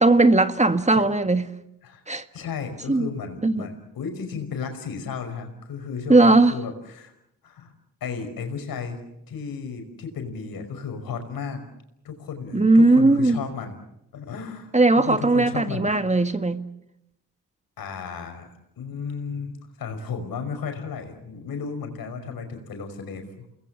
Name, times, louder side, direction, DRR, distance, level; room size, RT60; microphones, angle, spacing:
voice 1, 0.0-1.5 2.1-2.2 2.9-3.1 3.4-3.7 6.1-6.5 12.5-13.4 14.7-16.6, right 2 dB, 20° right, 1.7 m, -18 dB
voice 2, 2.3-7.1 7.4-7.7 8.0-9.0 9.3-11.6 12.0-13.8 14.1-16.2 17.8-18.5 18.8-23.5, left 5 dB, 85° left, 5.4 m, -34 dB
29.0 x 20.5 x 7.3 m
cardioid pair, 65°, 34 cm